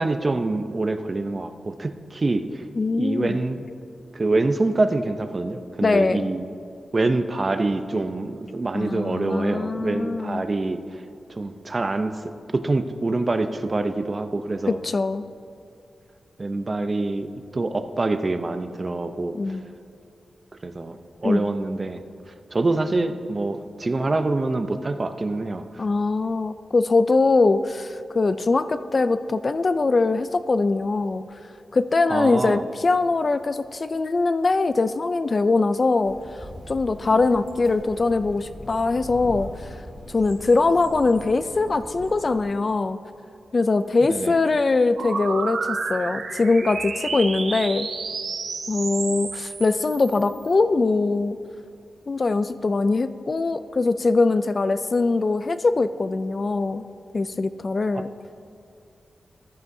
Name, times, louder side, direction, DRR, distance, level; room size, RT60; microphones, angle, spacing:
voice 1, 0.0-2.7 3.0-3.7 4.1-6.5 6.9-11.0 11.3-14.8 16.4-17.3 17.5-19.4 20.6-22.0 22.5-25.9 32.1-32.6 44.1-44.4 57.9-58.0, right 2 dB, 30° right, 9 dB, 0.5 m, -25 dB
voice 2, 2.8-3.4 5.8-6.3 8.7-10.4 14.7-15.2 19.3-19.6 21.2-21.5 25.8-31.2 31.7-36.2 36.7-39.5 40.1-43.0 43.5-47.9 48.7-51.4 52.1-56.8 57.1-58.1, left 3 dB, 40° left, 12 dB, 0.3 m, -22 dB
sound 1, 36.0-42.4, left 1 dB, 15° left, 2.0 m, -41 dB
sound 2, 45.0-50.5, right 4 dB, 70° right, 0.9 m, -31 dB
14.5 x 12.5 x 2.7 m, 2.5 s
wide cardioid pair, 125°, 0 cm